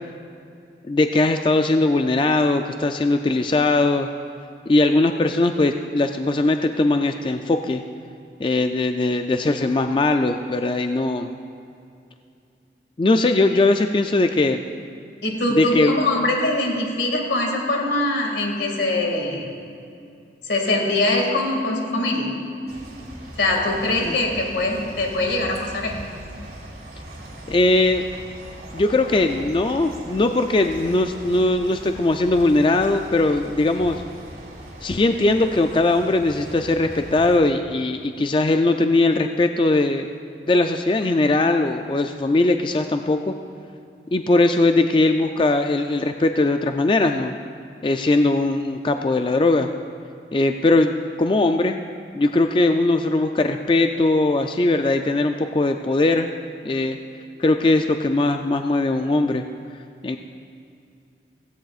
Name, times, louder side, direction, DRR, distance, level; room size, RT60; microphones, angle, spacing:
voice 1, 0.9-4.1 4.7-7.8 8.4-11.3 13.0-14.6 15.6-16.0 24.0-24.2 27.5-28.0 28.7-34.0 34.8-40.1 40.5-43.3 44.1-47.3 47.8-49.7 50.3-51.8 52.1-56.3 56.6-57.0 57.4-59.4 60.0-60.2, left 2 dB, 30° left, 6 dB, 0.3 m, -20 dB
voice 2, 15.2-19.5 20.4-22.4 23.4-26.0, left 2 dB, 90° left, 1 dB, 2.1 m, -22 dB
sound 1, 22.7-37.4, right 1 dB, 70° right, 2.5 m, -40 dB
16.5 x 16.0 x 2.4 m, 2.5 s
head